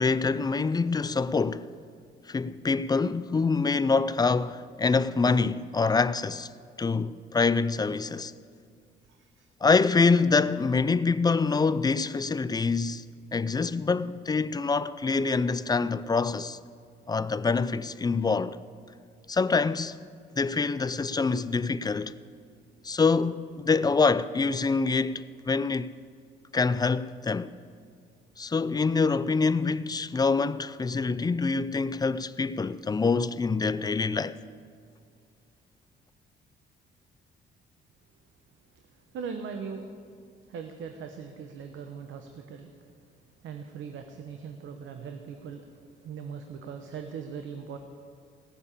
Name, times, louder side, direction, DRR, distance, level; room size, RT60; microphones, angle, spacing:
voice 1, 0.0-1.7 2.3-6.5 6.8-8.3 9.6-13.0 13.3-16.6 17.1-18.6 19.3-20.0 20.4-22.1 22.8-25.9 26.5-27.5 28.4-34.3, left 4 dB, 20° left, 0.5 m, -25 dB
voice 2, 9.1-9.5 39.1-39.9 40.5-42.7 43.4-45.7 46.0-47.8, right 6 dB, 75° right, 1.0 m, -40 dB
17.5 x 7.2 x 8.5 m
cardioid pair, 90°, 20 cm